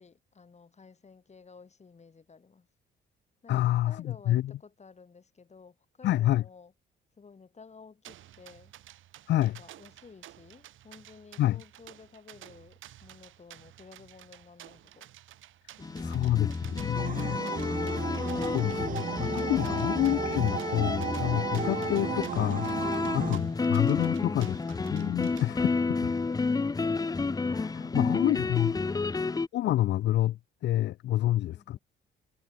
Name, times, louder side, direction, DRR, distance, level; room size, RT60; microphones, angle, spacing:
voice 1, 0.0-2.7 3.4-6.7 7.2-8.7 9.4-15.1 15.8-16.4 22.9-24.7 25.3-26.7 31.5-31.8, left 5 dB, 35° left, 7.8 m, -54 dB
voice 2, 3.5-4.5 6.0-6.4 9.3-9.6 11.4-11.6 16.0-17.4 18.5-22.9 23.1-24.6 24.9-26.0 27.5-28.8 29.5-31.8, left 14 dB, 60° left, 0.4 m, -28 dB
sound 1, 8.0-25.5, right 13 dB, 80° right, 2.6 m, -52 dB
sound 2, 15.8-29.5, left 4 dB, 20° left, 0.7 m, -30 dB
sound 3, 16.9-23.4, right 9 dB, 45° right, 0.6 m, -35 dB
cardioid pair, 90°, 20 cm